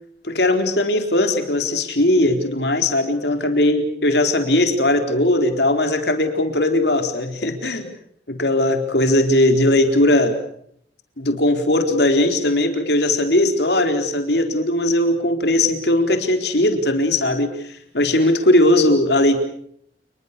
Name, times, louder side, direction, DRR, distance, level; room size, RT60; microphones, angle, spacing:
voice 1, 0.2-7.9 8.3-10.4 11.2-19.4, left 1 dB, 65° left, 6 dB, 4.2 m, -19 dB
30.0 x 21.0 x 6.9 m, 0.67 s
head